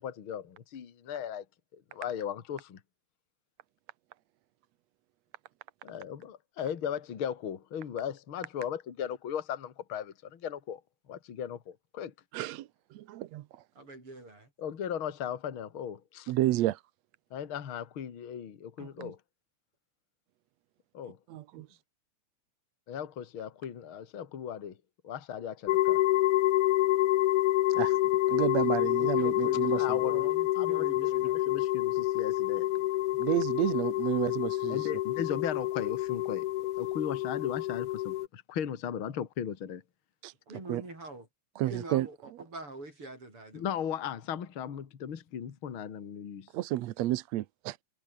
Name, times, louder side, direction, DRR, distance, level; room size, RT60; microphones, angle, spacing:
voice 1, 0.0-1.4 1.7-2.8 5.8-10.8 11.1-12.1 14.6-16.3 17.3-19.2 20.9-21.2 22.9-24.8 25.0-26.0 29.8-30.3 30.6-32.7 34.7-36.5 36.8-39.8 43.5-46.5, left 8 dB, 45° left, 2.6 m, -37 dB
voice 2, 12.3-13.6 16.3-16.8 18.8-19.1 21.3-21.7 27.7-28.0 28.3-30.0 33.2-34.9 40.2-40.3 40.7-40.8 41.6-42.1 46.5-47.8, right 15 dB, 75° right, 1.9 m, -31 dB
voice 3, 13.8-14.5 27.8-27.9 28.5-31.4 40.5-41.3 41.6-42.2 42.5-43.7, right 2 dB, 45° right, 8.5 m, -44 dB
sound 1, 25.7-38.3, left 15 dB, 90° left, 2.4 m, -28 dB
omnidirectional pair, 3.4 m